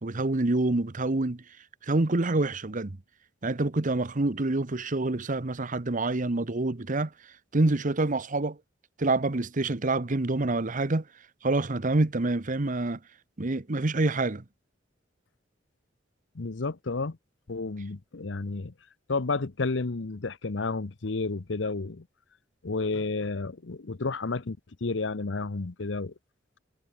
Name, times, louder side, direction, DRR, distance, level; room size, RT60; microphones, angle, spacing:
voice 1, 0.0-1.4 1.8-3.0 3.4-7.1 7.5-8.6 9.0-11.0 11.4-13.0 13.4-14.4, right 2 dB, 45° right, 1.0 m, -27 dB
voice 2, 16.4-17.2 17.5-18.7 19.1-22.0 22.6-26.1, left 3 dB, 70° left, 0.9 m, -31 dB
head